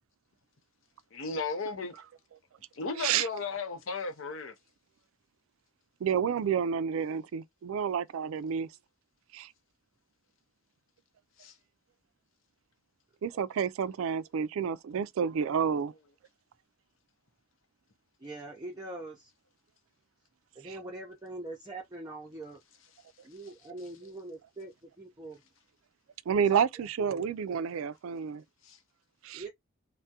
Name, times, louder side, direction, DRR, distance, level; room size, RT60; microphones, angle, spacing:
voice 1, 1.1-2.0 2.7-4.5 11.4-11.5 28.6-28.8, left 4 dB, 65° left, 0.6 m, -35 dB
voice 2, 6.0-8.7 9.3-9.5 13.2-15.9 20.6-20.8 26.3-28.4 29.2-29.4, right 7 dB, 70° right, 0.3 m, -30 dB
voice 3, 18.2-19.3 20.6-22.6 23.2-25.4 26.5-26.6 27.0-27.3 29.3-29.5, right 2 dB, 20° right, 0.5 m, -43 dB
3.4 x 2.1 x 2.7 m
head